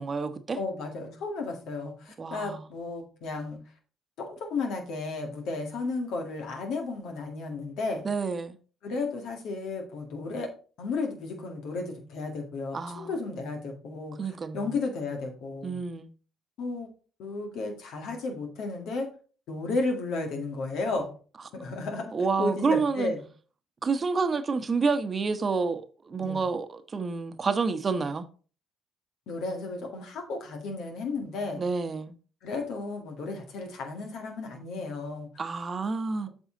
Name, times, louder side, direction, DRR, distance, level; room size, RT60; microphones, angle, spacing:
voice 1, 0.0-0.6 2.2-2.6 8.0-8.6 12.7-13.1 14.2-14.7 15.6-16.1 22.1-23.1 23.8-28.2 31.5-32.1 35.4-36.3, right 4 dB, 40° right, 1.0 m, -29 dB
voice 2, 0.6-3.6 4.2-8.0 8.8-10.5 10.8-15.8 16.6-16.9 17.2-19.1 19.5-21.1 21.5-22.1 22.4-23.3 26.2-26.4 29.3-31.6 32.4-35.3, left 3 dB, 70° left, 1.9 m, -33 dB
8.1 x 5.5 x 3.8 m
hypercardioid pair, 60°, 0 cm